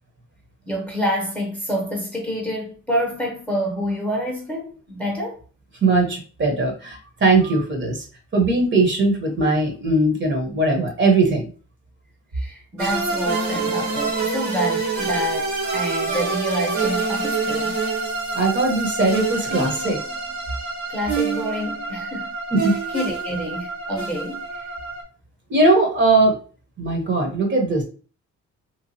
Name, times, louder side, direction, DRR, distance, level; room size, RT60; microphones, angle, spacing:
voice 1, 0.7-5.4 12.3-17.8 20.9-22.3 22.9-24.7, equal, 5° left, 0.8 m, -27 dB
voice 2, 5.8-8.0 8.3-11.4 18.3-20.0 22.5-22.7 25.5-26.4 26.8-27.8, right 2 dB, 40° right, 1.0 m, -19 dB
sound 1, 12.8-25.0, right 4 dB, 65° right, 1.0 m, -26 dB
2.9 x 2.3 x 2.7 m
cardioid pair, 90°, 30 cm